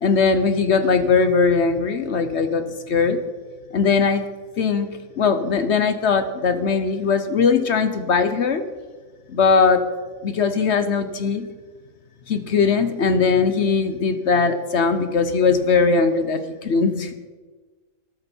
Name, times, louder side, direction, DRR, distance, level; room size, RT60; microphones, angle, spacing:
voice 1, 0.0-3.2 3.7-4.2 4.6-4.9 5.2-8.6 9.3-9.8 10.2-11.5 12.3-17.1, left 5 dB, 55° left, 10 dB, 1.0 m, -20 dB
13.5 x 12.0 x 4.5 m, 1.4 s
omnidirectional pair, 1.5 m